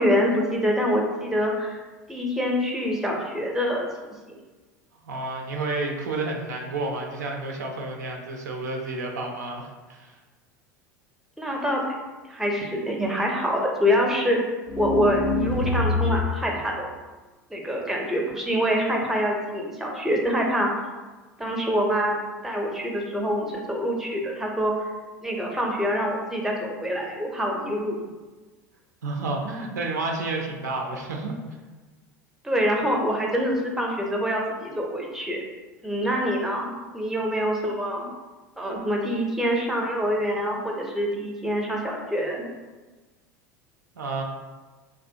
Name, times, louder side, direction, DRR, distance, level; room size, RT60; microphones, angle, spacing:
voice 1, 0.0-1.8 2.1-3.9 4.3-4.4 11.4-11.9 12.3-14.4 14.8-16.9 17.5-20.7 21.4-22.2 22.4-24.9 25.2-28.0 32.4-35.4 35.8-38.1 38.6-42.5, equal, 5° right, 0 dB, 0.5 m, -25 dB
voice 2, 5.0-10.1 29.0-31.4 44.0-44.2, right 3 dB, 80° right, 1 dB, 0.4 m, -30 dB
sound 1, 14.7-16.5, left 3 dB, 60° left, 0.4 m, -25 dB
2.5 x 2.1 x 2.6 m, 1.3 s
figure-of-eight pair, 75°, 9 cm